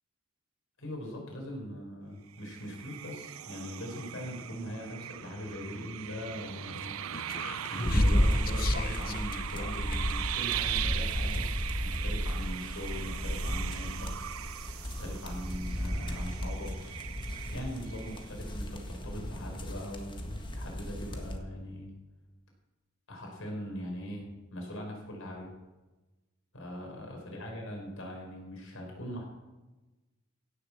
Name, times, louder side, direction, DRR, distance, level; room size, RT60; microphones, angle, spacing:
voice 1, 0.8-7.3 7.7-11.5 11.8-14.1 15.0-16.7 17.5-21.9 23.1-25.5 26.5-29.3, equal, 65° left, 0 dB, 5.1 m, -40 dB
sound 1, 2.3-18.6, right 11 dB, 85° right, 0.5 m, -39 dB
Speech, 6.8-10.2, left 7 dB, 45° left, 0.7 m, -43 dB
sound 2, 7.8-21.4, equal, 25° left, 1.6 m, -33 dB
16.5 x 7.8 x 7.4 m, 1.1 s
head